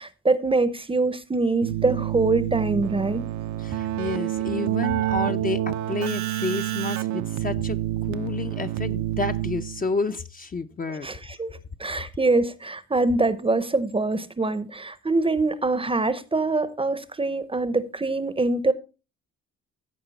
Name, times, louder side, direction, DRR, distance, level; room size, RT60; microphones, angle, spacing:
voice 1, 0.0-3.2 11.0-11.5 11.8-18.7, right 3 dB, 20° right, 0.7 m, -24 dB
Keyboard (musical), 1.6-10.0, right 14 dB, 70° right, 0.6 m, -28 dB
voice 2, 3.6-11.1, left 4 dB, 30° left, 0.6 m, -30 dB
15.0 x 5.0 x 4.0 m
cardioid pair, 90°, 30 cm